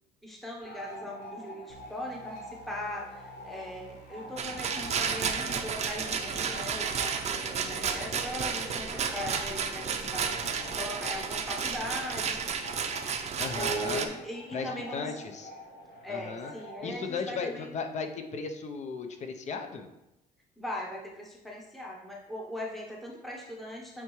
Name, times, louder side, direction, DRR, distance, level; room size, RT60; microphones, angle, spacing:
voice 1, 0.2-2.4 2.7-10.4 10.7-12.4 13.5-15.2 16.0-17.7 20.6-24.0, equal, ahead, -3 dB, 0.9 m, -39 dB
sound 1, 0.6-16.9, left 1 dB, 60° left, 2.1 m, -45 dB
sound 2, 1.7-9.7, right 1 dB, 75° left, 0.9 m, -54 dB
Rattle, 4.4-14.1, right 6 dB, 40° right, 0.6 m, -32 dB
voice 2, 13.4-14.1 14.5-15.5 16.1-16.5 16.8-19.9, left 5 dB, 45° left, 6 dB, 0.7 m, -36 dB
8.6 x 3.6 x 3.1 m, 0.91 s
cardioid pair, 110°, 17 cm